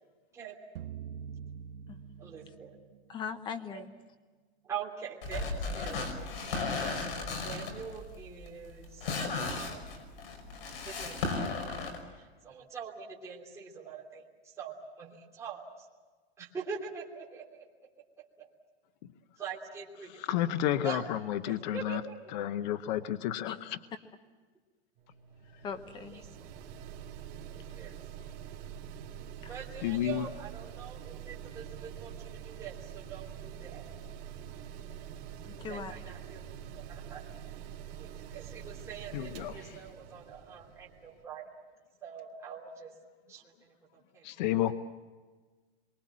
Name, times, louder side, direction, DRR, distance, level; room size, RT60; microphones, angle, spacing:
sound 1, 0.8-3.0, right 8 dB, 60° right, 0.9 m, -44 dB
voice 1, 2.2-2.7 3.7-3.8 4.6-9.1 9.4-9.8 10.8-11.5 12.1-15.9 16.4-17.6 18.2-18.5 19.4-20.2 20.8-21.0 21.5-22.1 26.0-26.4 27.5-28.0 29.5-33.9 35.7-36.4 36.9-37.3 38.0-41.5 42.0-42.9 43.3-43.5 44.1-44.2, right 6 dB, 10° right, -5 dB, 3.0 m, -44 dB
voice 2, 3.1-3.9 23.4-23.6 25.6-26.2 29.4-29.6 35.4-35.9, left 6 dB, 15° left, 11 dB, 1.0 m, -40 dB
sound 2, 5.2-12.0, left 3 dB, 65° left, 5.5 m, -35 dB
voice 3, 20.2-22.0 22.3-23.8 29.8-30.3 39.1-39.8 44.2-44.7, left 12 dB, 45° left, 12 dB, 0.8 m, -31 dB
Mechanical fan, 25.0-41.2, right 9 dB, 35° right, 2.9 m, -45 dB
27.5 x 23.5 x 7.4 m, 1.4 s
supercardioid pair, 170°, 32 cm